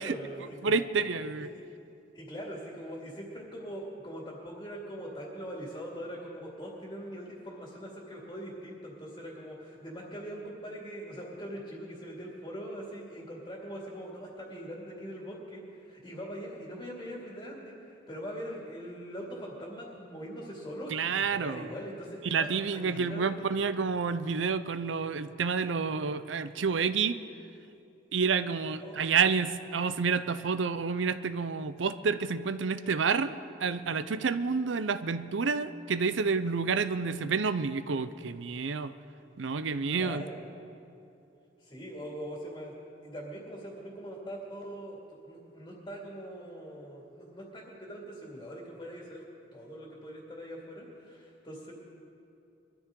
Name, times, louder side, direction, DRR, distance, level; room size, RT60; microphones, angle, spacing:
voice 1, 0.0-0.9 1.4-1.5 2.1-23.6 28.8-29.2 39.9-40.4 41.6-49.2 49.5-51.7, equal, 25° left, -3 dB, 2.3 m, -42 dB
voice 2, 0.6-1.5 20.9-21.7 22.3-27.2 28.1-38.9 39.4-40.2, right 5 dB, 85° right, 13 dB, 0.6 m, -29 dB
22.5 x 13.0 x 3.8 m, 2.7 s
head